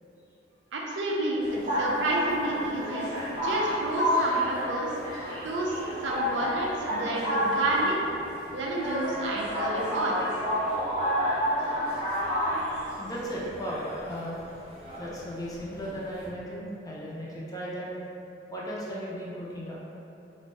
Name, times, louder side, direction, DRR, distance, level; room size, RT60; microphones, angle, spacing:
voice 1, 0.7-4.9 5.4-8.1 8.5-10.3, right 1 dB, 75° right, -3 dB, 0.4 m, -30 dB
sound 1, 1.4-16.3, equal, 25° right, 0.7 m, -30 dB
voice 2, 13.0-14.4 15.0-17.9 18.5-19.8, equal, 20° left, -6 dB, 0.4 m, -36 dB
2.6 x 2.1 x 3.1 m, 2.8 s
head